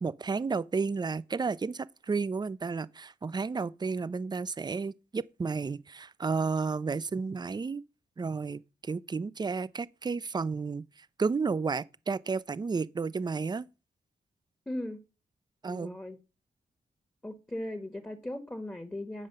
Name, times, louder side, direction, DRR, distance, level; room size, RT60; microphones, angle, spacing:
voice 1, 0.0-7.8 8.2-13.7 15.6-16.0, right 4 dB, 25° right, 0.4 m, -32 dB
voice 2, 14.7-15.0 15.7-16.2 17.2-19.3, left 1 dB, 10° left, 1.4 m, -38 dB
9.7 x 5.0 x 6.6 m
cardioid pair, 90°, 17 cm